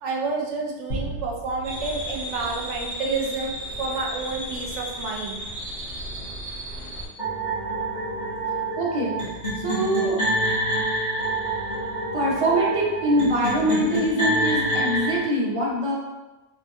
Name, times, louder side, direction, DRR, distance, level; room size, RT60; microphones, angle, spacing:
voice 1, 0.0-3.5 3.8-5.4 5.9-6.0, right 4 dB, 85° right, 0 dB, 0.9 m, -29 dB
sound 1, 0.9-3.4, right 1 dB, 70° left, 1.1 m, -36 dB
sound 2, 1.6-7.1, equal, 55° right, 0.9 m, -34 dB
sound 3, 7.2-15.2, right 1 dB, 45° left, 0.9 m, -27 dB
voice 2, 8.8-9.1 9.6-10.2 12.1-15.9, right 1 dB, 35° right, -5 dB, 0.6 m, -23 dB
2.7 x 2.6 x 2.4 m, 1.1 s
omnidirectional pair, 1.2 m